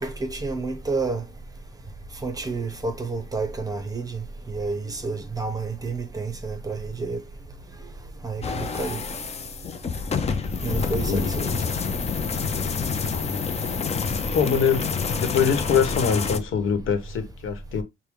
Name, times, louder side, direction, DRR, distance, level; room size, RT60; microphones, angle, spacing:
voice 1, 0.0-1.2 2.2-7.2 8.2-9.0 10.6-11.5, right 3 dB, 20° right, 0.8 m, -30 dB
sound 1, 8.4-16.4, left 5 dB, 30° left, 0.6 m, -28 dB
voice 2, 10.8-11.3 13.1-13.5 14.3-14.9 15.2-17.8, left 7 dB, 80° left, 1.1 m, -24 dB
6.2 x 2.2 x 3.5 m
cardioid pair, 150°, 20 cm